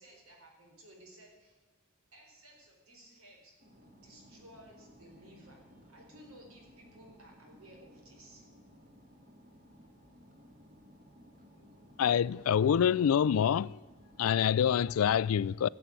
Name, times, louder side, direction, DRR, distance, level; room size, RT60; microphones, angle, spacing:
voice 1, 0.0-1.6 2.1-3.5 4.0-8.5, right 1 dB, 90° right, 4.5 m, -56 dB
sound 1, 3.6-14.8, equal, 40° right, 2.8 m, -58 dB
voice 2, 12.0-13.8 14.2-15.7, left 8 dB, 85° left, 0.3 m, -26 dB
16.0 x 7.8 x 8.9 m
head